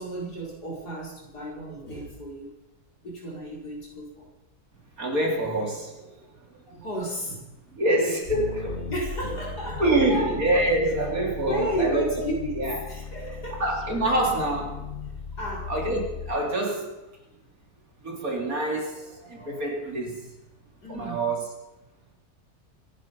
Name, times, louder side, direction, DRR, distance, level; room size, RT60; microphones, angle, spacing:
voice 1, 0.0-2.5 3.0-4.3 6.7-7.8 8.9-10.4 11.4-13.7 15.3-15.7 20.0-20.1 20.8-21.3, right 1 dB, 85° left, -3 dB, 5.3 m, -33 dB
voice 2, 5.0-6.2 6.7-6.9 7.7-8.8 9.8-12.3 12.6-12.8 13.6-14.9 15.7-16.9 18.0-20.3 20.9-21.4, right 1 dB, 60° right, 0 dB, 3.8 m, -26 dB
sound 1, 8.2-16.4, left 4 dB, 45° left, 1.9 m, -37 dB
24.0 x 11.0 x 5.5 m, 0.98 s
omnidirectional pair, 1.7 m